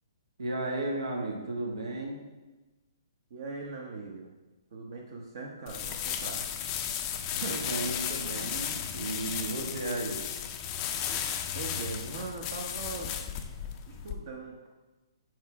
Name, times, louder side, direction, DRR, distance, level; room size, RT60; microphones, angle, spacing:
voice 1, 0.4-2.2 7.3-10.2, right 2 dB, 90° right, 0 dB, 1.7 m, -34 dB
voice 2, 3.3-4.3 4.7-6.5 7.4-7.6 11.5-13.1 13.9-14.7, right 3 dB, 55° right, -1 dB, 1.0 m, -40 dB
sound 1, 5.7-14.1, left 9 dB, 25° left, 0.4 m, -34 dB
6.5 x 4.6 x 4.8 m, 1.2 s
hypercardioid pair, 160°, 3 cm